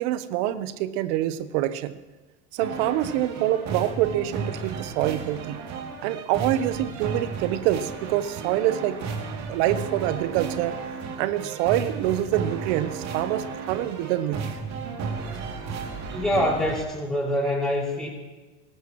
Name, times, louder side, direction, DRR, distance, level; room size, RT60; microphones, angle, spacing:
voice 1, 0.0-2.0 2.5-5.6 6.0-9.0 9.5-10.8 11.2-14.5, right 13 dB, 65° right, 13 dB, 1.0 m, -26 dB
sound 1, 2.6-16.8, right 5 dB, 45° right, 2.8 m, -34 dB
voice 2, 16.1-18.1, left 1 dB, ahead, -4 dB, 6.0 m, -25 dB
24.0 x 14.0 x 3.1 m, 1.2 s
supercardioid pair, 105°, 37 cm